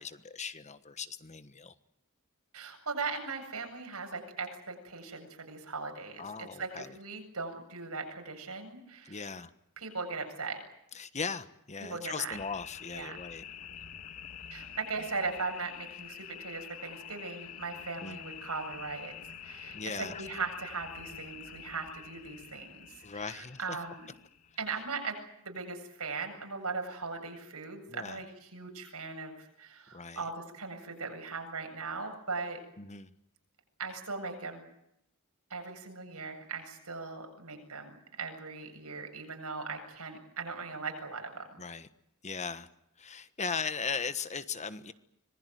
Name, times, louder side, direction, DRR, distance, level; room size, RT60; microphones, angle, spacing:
voice 1, 0.0-1.7 6.2-7.0 9.0-9.5 10.9-13.4 18.0-18.2 19.7-20.3 23.0-23.8 27.9-28.2 29.9-30.2 32.8-33.1 41.6-41.9 42.2-42.7 43.0-44.9, left 5 dB, 30° left, 12 dB, 1.3 m, -38 dB
voice 2, 2.5-9.3 9.8-10.6 11.8-12.4 12.9-13.2 14.5-19.1 19.4-24.1 24.6-25.2 25.4-32.6 33.8-34.6 35.5-41.5, right 4 dB, 80° right, 4 dB, 7.8 m, -39 dB
sound 1, 12.3-24.9, left 9 dB, 90° left, 2.2 m, -47 dB
25.5 x 21.0 x 9.4 m, 0.79 s
head